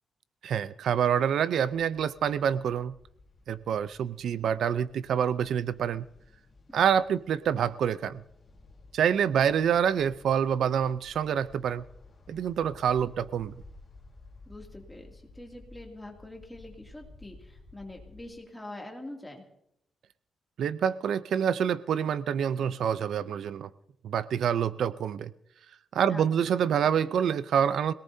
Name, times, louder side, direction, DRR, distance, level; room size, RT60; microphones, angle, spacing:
voice 1, 0.4-2.9 3.5-6.0 6.7-8.2 8.9-11.8 12.3-13.5 20.6-23.7 24.0-25.3 25.9-27.9, right 8 dB, 70° right, 15 dB, 0.5 m, -27 dB
sound 1, 1.6-18.3, left 3 dB, 25° left, 3.7 m, -54 dB
voice 2, 14.5-19.4 26.1-26.5, left 1 dB, 5° left, 0 dB, 2.6 m, -45 dB
25.0 x 18.5 x 2.7 m, 0.75 s
wide cardioid pair, 155°, 0 cm